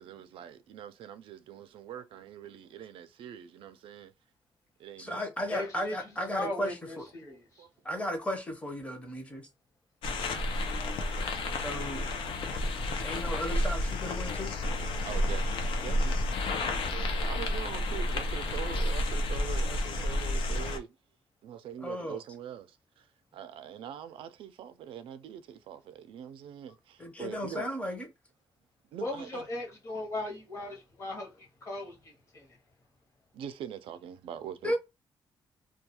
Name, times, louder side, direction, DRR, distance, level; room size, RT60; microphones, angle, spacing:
voice 1, 0.0-4.1 4.8-5.2 7.3-7.7 15.0-16.3 16.9-21.0 21.4-23.1 23.3-27.7 28.9-29.5 33.3-34.8, right 9 dB, 85° right, 0.4 m, -43 dB
voice 2, 5.0-7.1 7.8-9.5 11.6-12.1 13.0-14.6 21.8-22.2 27.0-28.1 34.6-34.8, equal, 15° left, 0.6 m, -35 dB
voice 3, 5.5-5.9 6.3-7.6 29.0-32.5, left 2 dB, 35° left, 0.9 m, -37 dB
sound 1, 10.0-20.8, left 1 dB, 75° left, 0.5 m, -31 dB
2.3 x 2.2 x 2.8 m
cardioid pair, 135°, 9 cm